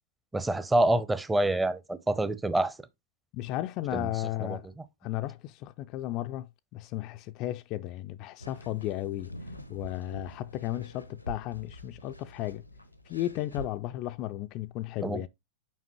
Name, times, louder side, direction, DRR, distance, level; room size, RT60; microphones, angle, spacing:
voice 1, 0.3-2.7 3.9-4.1 4.4-4.6 15.0-15.3, right 1 dB, 10° right, 0.6 m, -27 dB
voice 2, 3.3-4.7 5.0-9.3 9.7-12.6 13.1-15.3, left 15 dB, 40° left, 0.3 m, -34 dB
sound 1, 8.4-13.7, left 1 dB, 90° left, 0.7 m, -45 dB
7.3 x 5.3 x 3.0 m
figure-of-eight pair, 90°, 0 cm